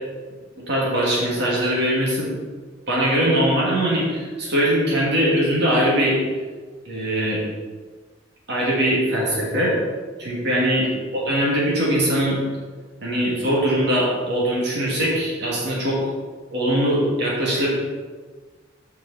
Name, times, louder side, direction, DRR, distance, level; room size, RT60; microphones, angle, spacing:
voice 1, 0.7-2.3 2.9-6.2 6.9-7.4 8.5-9.7 10.2-10.9 11.3-12.4 13.0-16.0 16.5-17.7, equal, 60° right, -5 dB, 2.5 m, -21 dB
8.6 x 5.7 x 4.2 m, 1.5 s
head